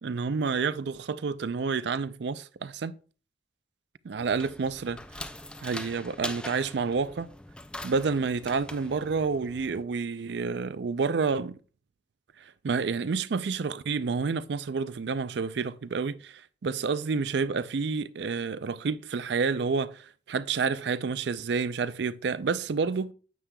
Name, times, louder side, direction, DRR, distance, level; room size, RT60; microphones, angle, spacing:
voice 1, 0.0-2.9 4.0-5.0 5.6-7.3 7.8-11.6 12.6-23.1, right 5 dB, 65° right, 0.4 m, -29 dB
sound 1, 4.2-9.8, left 1 dB, 5° left, 0.3 m, -42 dB
9.4 x 8.0 x 2.3 m
head